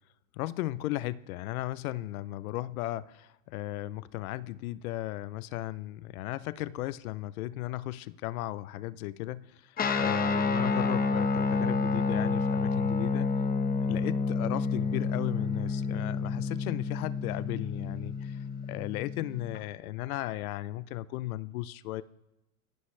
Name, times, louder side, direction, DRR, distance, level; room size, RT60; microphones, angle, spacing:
voice 1, 0.3-13.4 13.8-18.4 18.7-22.0, left 16 dB, 80° left, 17 dB, 0.6 m, -36 dB
Guitar, 9.8-19.6, left 4 dB, 20° left, 1.1 m, -29 dB
25.5 x 12.5 x 3.3 m, 0.94 s
supercardioid pair, 120°, 42 cm